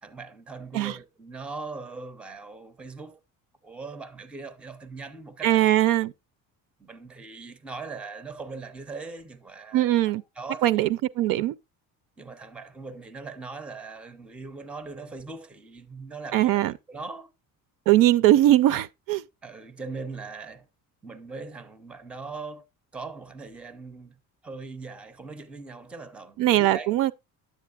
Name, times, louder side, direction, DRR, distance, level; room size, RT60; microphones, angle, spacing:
voice 1, 0.0-3.2 3.6-5.7 6.8-10.9 12.2-16.6 16.9-17.3 19.4-20.7 21.0-22.7 22.9-27.0, right 4 dB, 5° right, 0.4 m, -40 dB
voice 2, 5.4-6.1 9.7-10.2 10.6-10.9 11.2-11.5 16.3-16.7 17.9-19.2 26.4-27.1, right 14 dB, 65° right, 0.5 m, -20 dB
10.0 x 7.6 x 2.3 m
cardioid pair, 170°, 36 cm